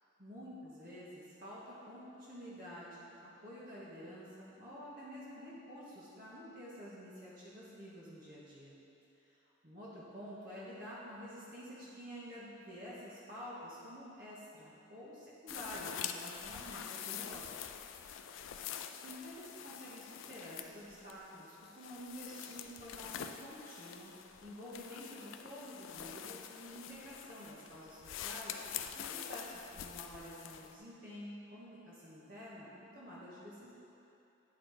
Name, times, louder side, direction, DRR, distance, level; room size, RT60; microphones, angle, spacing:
voice 1, 0.2-8.8 9.3-9.4 9.6-17.6 19.0-24.1 24.4-28.6 28.9-33.7, equal, 45° right, -8 dB, 1.1 m, -49 dB
sound 1, 15.5-30.7, left 9 dB, 80° left, 0.4 m, -46 dB
9.5 x 4.0 x 4.8 m, 2.9 s
head